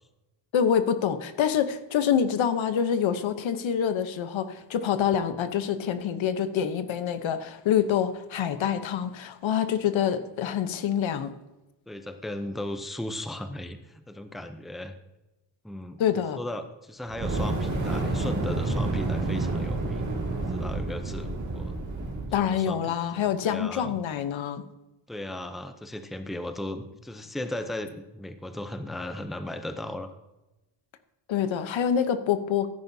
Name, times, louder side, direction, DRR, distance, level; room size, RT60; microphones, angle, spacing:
voice 1, 0.5-11.3 16.0-16.4 22.3-24.6 31.3-32.7, left 8 dB, 90° left, 10 dB, 0.9 m, -26 dB
voice 2, 11.9-15.0 15.6-20.1 20.3-21.8 22.4-24.0 25.1-30.1, left 1 dB, ahead, 8 dB, 0.5 m, -36 dB
Fire, 17.1-22.4, right 2 dB, 40° right, 2.3 m, -29 dB
15.5 x 9.5 x 2.7 m, 1.0 s
wide cardioid pair, 155°, 45 cm